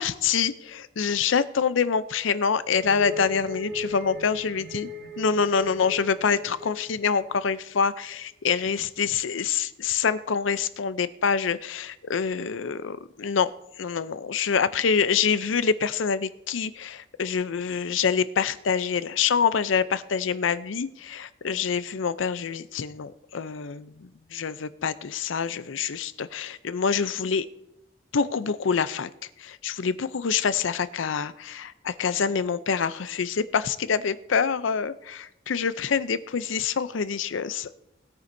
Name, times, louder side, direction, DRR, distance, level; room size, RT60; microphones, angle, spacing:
voice 1, 0.0-4.9 5.2-13.5 13.8-27.5 28.1-29.1 29.4-37.8, left 6 dB, 80° left, 14 dB, 0.5 m, -26 dB
sound 1, 2.8-7.8, left 2 dB, 85° right, 4.6 m, -38 dB
20.0 x 9.5 x 2.7 m, 0.84 s
head